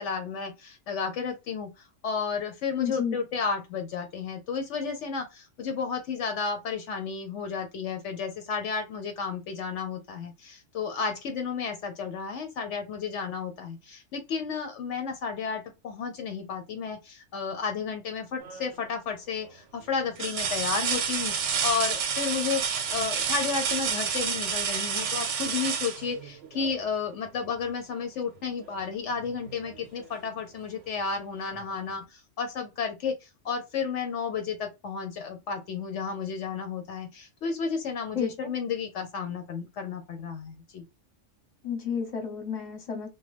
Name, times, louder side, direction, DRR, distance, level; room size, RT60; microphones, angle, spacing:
voice 1, 0.0-21.3 21.6-40.8, left 5 dB, 75° left, 0.9 m, -32 dB
voice 2, 2.8-3.2 38.1-38.3 41.6-43.1, left 7 dB, 35° left, 1.0 m, -31 dB
sound 1, 18.4-18.9 19.4-19.5 20.2-26.8 28.6-28.8 29.2-30.3 31.6-31.7, right 6 dB, 75° right, 1.0 m, -30 dB
3.0 x 2.3 x 3.1 m
omnidirectional pair, 1.3 m